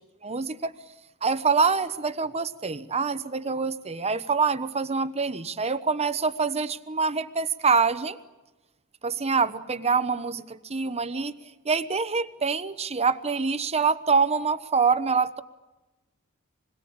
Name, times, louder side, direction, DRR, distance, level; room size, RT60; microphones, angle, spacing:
voice 1, 0.2-0.7 1.2-8.2 9.0-11.3 11.6-15.4, right 5 dB, 30° right, 11 dB, 1.0 m, -25 dB
27.5 x 21.5 x 8.7 m, 1.1 s
head